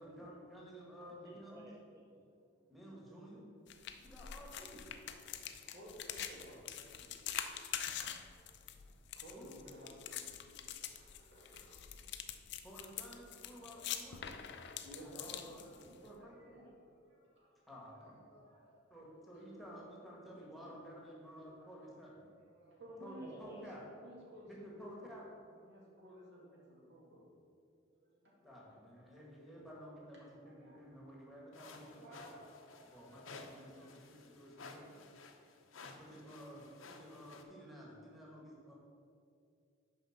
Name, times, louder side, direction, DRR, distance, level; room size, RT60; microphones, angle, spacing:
voice 1, 0.0-1.7 2.7-3.5 4.0-4.9 9.3-9.5 12.6-14.4 14.9-15.6 16.0-16.5 17.7-18.3 18.9-22.2 23.0-23.8 24.5-25.2 28.4-32.3 32.8-34.9 35.9-38.7, equal, ahead, -4 dB, 1.7 m, -53 dB
voice 2, 1.0-2.7 23.2-23.9, right 2 dB, 15° right, 0 dB, 0.5 m, -58 dB
sound 1, 3.7-16.1, left 9 dB, 60° left, 0.5 m, -45 dB
voice 3, 5.7-7.6 8.3-8.4 9.1-12.1 13.2-13.8 14.3-17.6 17.9-19.1 20.1-20.2 20.5-20.7 21.4-21.7 22.4-23.7 24.0-24.9 25.6-27.3 28.0-29.2 30.2-31.4 32.0-33.3 33.8-33.9 34.7-35.1, equal, 60° right, -4 dB, 2.2 m, -57 dB
sound 2, 31.5-37.4, left 3 dB, 85° left, 0.8 m, -55 dB
6.6 x 5.3 x 6.5 m, 2.4 s
head